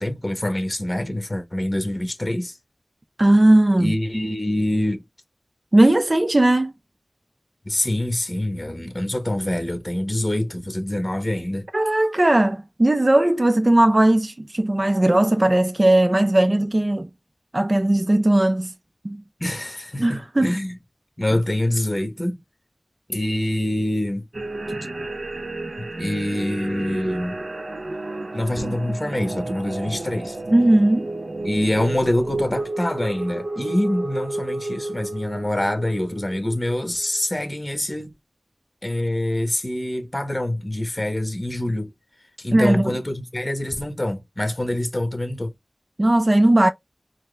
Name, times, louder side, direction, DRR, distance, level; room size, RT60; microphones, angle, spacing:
voice 1, 0.0-2.6 3.8-5.0 7.6-11.7 19.4-20.8 21.2-22.4 23.1-24.2 25.8-27.4 28.3-30.4 31.4-38.1 38.8-41.9 42.4-45.5, left 1 dB, 30° left, 1.1 m, -25 dB
voice 2, 3.2-3.9 5.7-6.7 11.7-17.1 17.5-18.7 19.0-19.2 20.0-20.5 30.5-31.1 42.5-42.9 46.0-46.7, right 1 dB, 45° right, 0.4 m, -17 dB
sound 1, 24.3-37.1, right 2 dB, 85° right, 0.7 m, -31 dB
4.5 x 2.1 x 3.2 m
wide cardioid pair, 40°, 0 cm